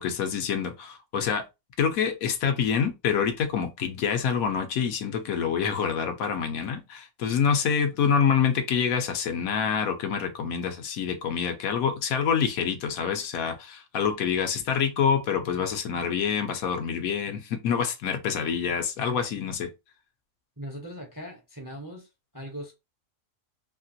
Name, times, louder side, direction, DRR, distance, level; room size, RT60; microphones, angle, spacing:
voice 1, 0.0-1.4 1.8-19.7, left 7 dB, 80° left, 1.1 m, -26 dB
voice 2, 20.6-22.1 22.3-22.7, equal, 25° right, 0.5 m, -39 dB
2.9 x 2.8 x 2.7 m
omnidirectional pair, 1.5 m